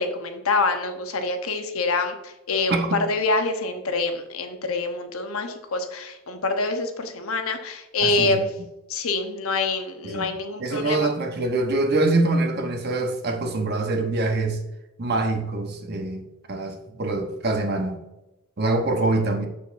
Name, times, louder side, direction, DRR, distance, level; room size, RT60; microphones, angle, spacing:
voice 1, 0.0-8.5 8.9-11.1, left 3 dB, 75° left, 6 dB, 1.0 m, -26 dB
voice 2, 8.0-8.4 10.0-10.3 10.6-14.6 15.0-18.0 18.6-19.5, right 2 dB, 45° right, 4 dB, 1.0 m, -24 dB
7.2 x 6.7 x 2.6 m, 0.97 s
head